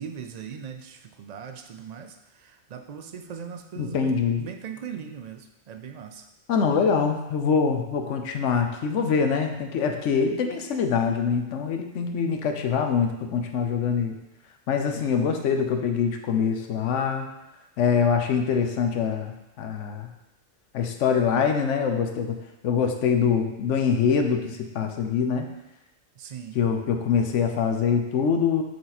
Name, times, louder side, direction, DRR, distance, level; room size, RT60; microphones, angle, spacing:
voice 1, 0.0-6.3 26.2-26.6, right 7 dB, 75° right, 6 dB, 0.3 m, -39 dB
voice 2, 3.8-4.4 6.5-14.2 14.7-17.3 17.8-20.1 20.7-22.4 22.6-25.5 26.5-28.6, left 6 dB, 80° left, 5 dB, 1.0 m, -24 dB
6.6 x 3.9 x 4.1 m, 0.92 s
omnidirectional pair, 1.3 m